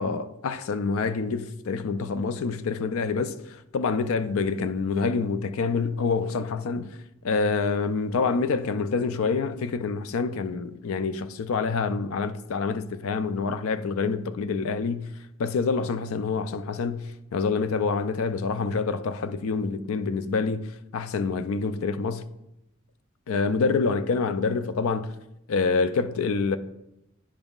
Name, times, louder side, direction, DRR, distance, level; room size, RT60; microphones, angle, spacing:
voice 1, 0.0-7.0 7.2-15.1 15.4-22.3 23.3-25.1 25.5-26.6, left 4 dB, 75° left, 0.4 m, -27 dB
10.0 x 5.3 x 2.4 m
head